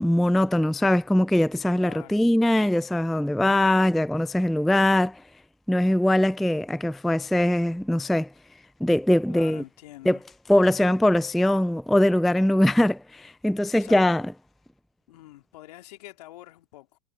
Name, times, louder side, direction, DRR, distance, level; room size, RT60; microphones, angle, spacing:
voice 1, 0.0-5.2 5.7-8.3 8.8-9.6 10.1-10.2 10.5-14.3, left 1 dB, ahead, 0.3 m, -21 dB
voice 2, 1.8-2.2 9.3-10.2 13.8-14.1 15.1-17.0, left 17 dB, 65° left, 2.8 m, -45 dB
hypercardioid pair, 110°, 21 cm